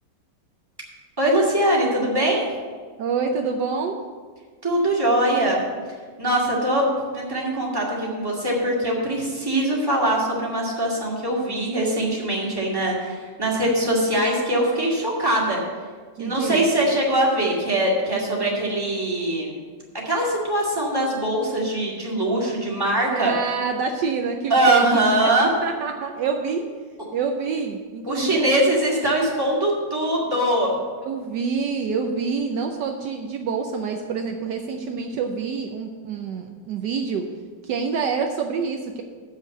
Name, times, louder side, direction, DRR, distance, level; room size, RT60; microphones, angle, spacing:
voice 1, 1.2-2.4 4.6-5.6 6.2-15.6 16.2-19.6 20.1-23.3 24.5-25.5 28.1-30.7, right 1 dB, 10° right, -4 dB, 2.2 m, -22 dB
voice 2, 3.0-4.0 16.2-16.7 23.1-26.6 27.1-29.0 31.0-37.2 37.6-39.0, right 5 dB, 70° right, 3 dB, 1.3 m, -27 dB
7.5 x 6.4 x 7.8 m, 1.5 s
omnidirectional pair, 2.0 m